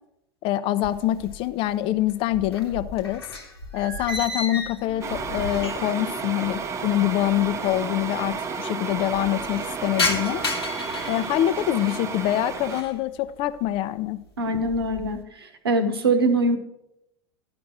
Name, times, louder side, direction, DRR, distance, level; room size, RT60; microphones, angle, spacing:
voice 1, 0.4-3.2 3.7-10.4 11.1-14.2, left 13 dB, 45° left, 14 dB, 0.5 m, -25 dB
sound 1, 0.8-1.7 2.0-6.1 6.4-6.5 7.3-7.4 7.6-7.7 8.0-8.5 8.9-12.1 12.5-13.0 13.5-13.9 14.3-15.2, left 2 dB, 85° left, 1.3 m, -33 dB
sound 2, 5.0-12.8, right 5 dB, 20° right, 0.7 m, -32 dB
voice 2, 14.4-15.2 15.6-16.6, right 2 dB, 75° right, 8 dB, 1.1 m, -22 dB
11.5 x 5.2 x 6.0 m, 0.85 s
figure-of-eight pair, 80°, 13 cm